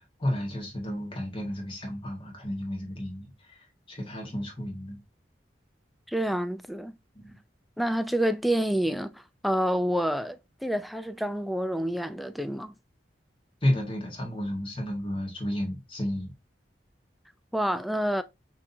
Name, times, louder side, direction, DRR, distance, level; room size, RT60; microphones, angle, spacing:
voice 1, 0.2-5.0 7.1-7.3 13.6-16.3, left 1 dB, 30° left, 1.6 m, -32 dB
voice 2, 6.1-7.0 7.8-12.7 17.5-18.2, equal, ahead, 0.3 m, -28 dB
6.0 x 2.8 x 2.6 m
head